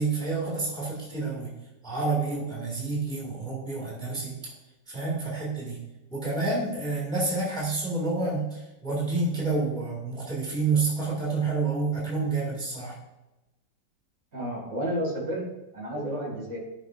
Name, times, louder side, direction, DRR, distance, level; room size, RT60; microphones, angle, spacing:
voice 1, 0.0-1.5 1.8-4.5 4.9-5.8 6.1-13.0, right 3 dB, ahead, -4 dB, 2.1 m, -29 dB
voice 2, 14.3-15.4 15.7-16.6, equal, 50° right, -3 dB, 2.7 m, -31 dB
12.5 x 6.2 x 2.5 m, 1.0 s
omnidirectional pair, 2.0 m